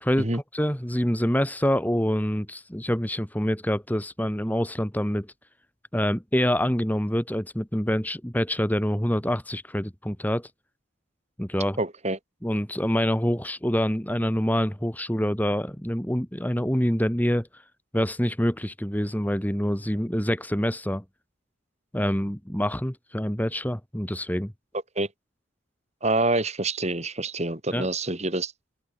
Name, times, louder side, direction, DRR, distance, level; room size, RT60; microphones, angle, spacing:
voice 1, 0.0-5.3 5.9-10.5 11.4-11.8 12.4-17.5 17.9-21.0 21.9-24.5 27.7-27.9, equal, 10° left, 2.3 m, -26 dB
voice 2, 11.8-12.2 25.0-25.1 26.0-28.5, right 2 dB, 30° right, 3.1 m, -26 dB
head